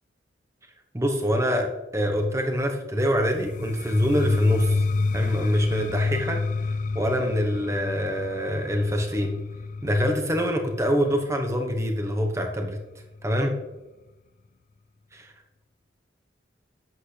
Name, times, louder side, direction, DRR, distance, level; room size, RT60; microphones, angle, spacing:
voice 1, 0.9-4.8 5.1-6.4 6.7-9.3 9.8-12.8 13.2-13.5 15.1-15.3, equal, 15° right, 3 dB, 1.1 m, -25 dB
sound 1, 3.1-12.9, left 3 dB, 45° left, 0.3 m, -29 dB
11.0 x 8.3 x 3.3 m, 1.1 s
head